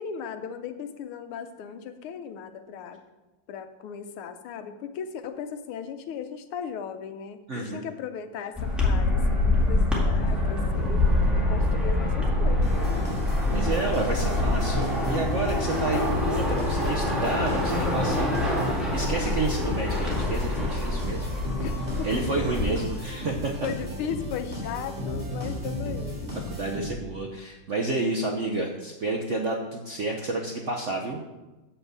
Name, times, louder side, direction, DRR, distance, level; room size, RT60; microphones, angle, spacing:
voice 1, 0.0-3.0 3.5-11.0 11.4-12.9 21.6-22.1 22.4-22.6 23.6-26.3, left 7 dB, 85° left, 9 dB, 1.7 m, -37 dB
voice 2, 7.5-7.8 13.5-21.3 22.0-23.5 26.5-31.2, right 2 dB, 65° right, 1 dB, 0.7 m, -30 dB
sound 1, 8.6-22.7, left 2 dB, ahead, 1.8 m, -25 dB
sound 2, 12.6-27.2, left 1 dB, 20° right, 2.9 m, -34 dB
8.0 x 5.8 x 6.8 m, 1.1 s
omnidirectional pair, 2.3 m